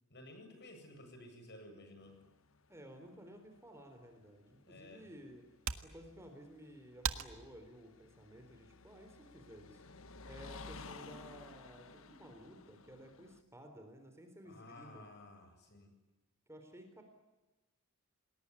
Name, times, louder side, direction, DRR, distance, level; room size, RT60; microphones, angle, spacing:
voice 1, 0.1-2.2 4.6-5.1 14.5-15.9, left 1 dB, 55° left, 6 dB, 7.8 m, -54 dB
sound 1, 2.0-13.4, left 3 dB, 70° left, 1.4 m, -55 dB
voice 2, 2.7-5.4 5.8-9.8 10.2-15.1 16.5-17.0, equal, 15° right, 5 dB, 3.9 m, -54 dB
sound 2, 4.5-9.6, right 7 dB, 75° right, 1.6 m, -46 dB
28.5 x 20.5 x 9.9 m, 1.1 s
head